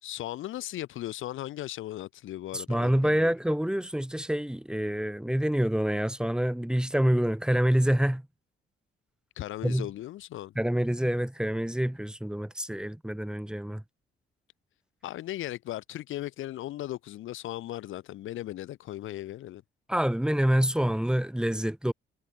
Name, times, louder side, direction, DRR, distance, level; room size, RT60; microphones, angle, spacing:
voice 1, 0.0-3.3 9.4-10.5 15.0-19.6, left 14 dB, 85° left, 4.9 m, -37 dB
voice 2, 2.5-8.2 9.6-9.9 10.6-13.8 19.9-21.9, equal, 5° right, 3.5 m, -27 dB
cardioid pair, 90°, 20 cm